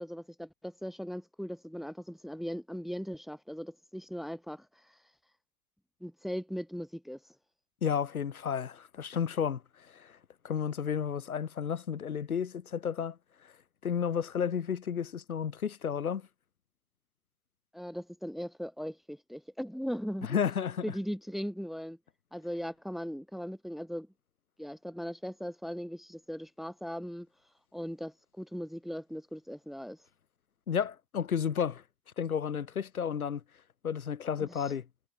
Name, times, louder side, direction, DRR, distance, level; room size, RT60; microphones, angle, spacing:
voice 1, 0.0-5.0 6.0-7.2 17.7-20.4 20.8-22.0 22.3-24.1 24.6-27.3 27.7-30.0 34.4-34.7, equal, ahead, 3.0 m, -39 dB
voice 2, 7.8-10.2 10.4-13.2 13.4-13.5 13.8-16.3 20.2-20.8 30.7-31.8 32.2-33.4 33.8-34.8, left 7 dB, 90° left, 1.8 m, -32 dB
figure-of-eight pair, 50°, 42 cm